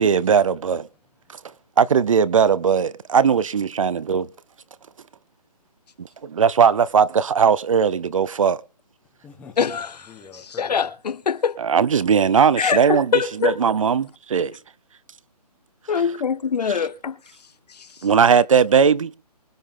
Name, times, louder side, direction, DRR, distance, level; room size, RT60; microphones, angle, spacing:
voice 1, 0.0-0.9 1.8-4.3 6.0-8.6 11.6-13.1 13.4-14.6 18.0-19.1, right 6 dB, 55° right, 0.7 m, -18 dB
voice 2, 0.9-1.7 9.0-10.9, left 5 dB, 5° left, 1.4 m, -47 dB
voice 3, 10.6-11.6 12.6-13.6 15.9-17.2 17.7-17.9, left 6 dB, 80° left, 0.8 m, -23 dB
24.5 x 8.6 x 3.8 m
hypercardioid pair, 170°, 21 cm